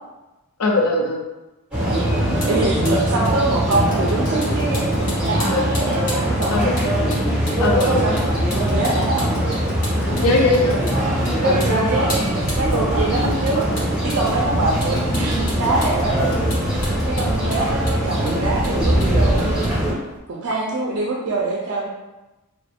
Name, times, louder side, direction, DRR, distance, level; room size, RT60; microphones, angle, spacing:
voice 1, 0.6-1.2 5.4-5.7 6.5-6.9 7.6-8.2 10.2-10.8, left 2 dB, 65° left, 1 dB, 0.5 m, -20 dB
sound 1, 1.7-19.9, equal, 5° right, 1.2 m, -21 dB
Vehicle, 2.2-20.2, left 1 dB, 90° left, 1.1 m, -36 dB
voice 2, 2.4-6.8 7.7-8.3 8.7-9.3 11.4-13.6 14.0-16.3 17.1-19.8 20.3-21.9, right 3 dB, 55° right, -3 dB, 0.5 m, -24 dB
2.9 x 2.4 x 3.4 m, 1.0 s
head